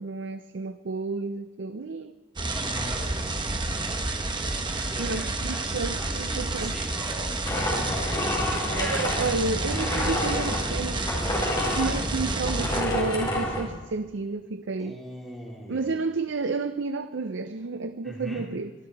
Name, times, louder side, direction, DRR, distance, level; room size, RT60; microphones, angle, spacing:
voice 1, 0.0-2.1 5.0-6.8 8.7-11.0 11.6-15.0 15.7-18.7, right 3 dB, 80° right, 0.6 m, -31 dB
voice 2, 2.4-4.0 4.7-7.4 14.8-15.9 18.0-18.5, equal, ahead, 3.7 m, -41 dB
sound 1, 2.4-12.8, right 2 dB, 25° right, 1.1 m, -30 dB
sound 2, 7.4-13.6, left 1 dB, 25° left, 4.1 m, -29 dB
24.0 x 12.5 x 4.7 m
head